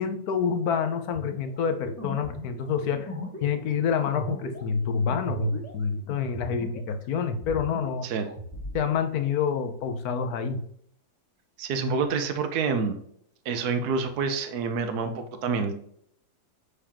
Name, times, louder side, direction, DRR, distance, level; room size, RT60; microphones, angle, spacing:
voice 1, 0.0-3.1 3.4-8.1 8.7-10.6, left 6 dB, 60° left, 8 dB, 1.2 m, -27 dB
sound 1, 1.1-6.9 7.2-8.8, equal, 10° left, 1.6 m, -37 dB
voice 2, 11.6-13.0 13.4-15.8, right 5 dB, 60° right, 7 dB, 1.3 m, -27 dB
7.0 x 4.9 x 2.9 m, 0.67 s
omnidirectional pair, 2.0 m